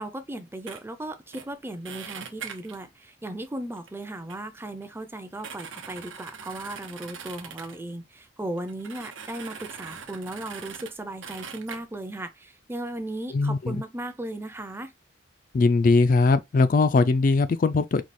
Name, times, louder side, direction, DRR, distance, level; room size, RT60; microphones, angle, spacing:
voice 1, 0.0-14.9, right 1 dB, 10° right, 0.5 m, -36 dB
sound 1, 0.7-0.8 1.3-1.5 1.8-2.8 3.8-3.9 4.3-4.4 4.8-4.9 5.2-7.8 8.6-10.9 11.2-11.8, right 7 dB, 85° right, 0.8 m, -41 dB
voice 2, 13.3-13.8 15.5-18.0, left 3 dB, 45° left, 0.3 m, -20 dB
4.6 x 2.3 x 4.1 m
head